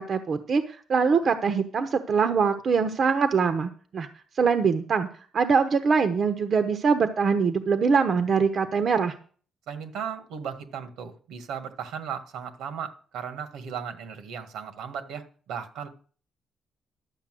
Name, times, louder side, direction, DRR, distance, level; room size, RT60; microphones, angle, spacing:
voice 1, 0.0-4.1 4.4-5.1 5.3-9.1, right 5 dB, 55° right, 8 dB, 0.9 m, -23 dB
voice 2, 9.7-15.9, right 7 dB, 85° right, 8 dB, 1.8 m, -36 dB
12.0 x 5.7 x 7.7 m, 0.43 s
cardioid pair, 90°, 0 cm